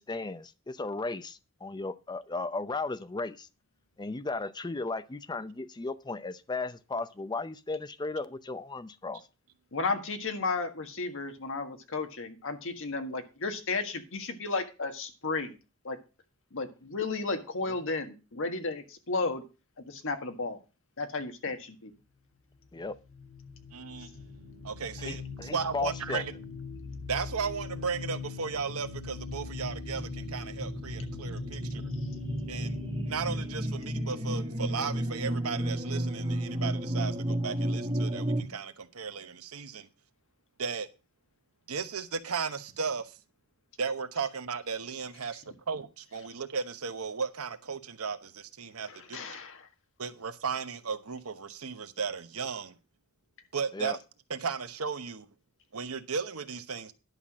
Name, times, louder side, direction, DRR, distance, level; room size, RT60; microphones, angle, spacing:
voice 1, 0.0-3.5 4.0-9.2 22.7-23.0 25.0-26.2 53.7-54.0, left 3 dB, 20° left, 0.6 m, -35 dB
voice 2, 9.7-15.6 15.8-16.0 16.5-19.4 19.8-20.6 21.0-21.9 48.9-49.7, left 3 dB, 65° left, 1.6 m, -33 dB
sound 1, 22.6-35.9, left 4 dB, 45° left, 3.0 m, -42 dB
voice 3, 23.7-24.1 24.6-26.3 27.1-31.8 32.5-32.8 33.0-39.9 40.6-40.9 41.7-43.2 43.8-49.2 50.0-52.8 53.5-54.0 54.3-55.3 55.7-56.9, right 5 dB, 85° right, 1.0 m, -35 dB
sound 2, 28.6-38.4, right 1 dB, 25° right, 2.2 m, -33 dB
11.0 x 5.8 x 6.2 m
head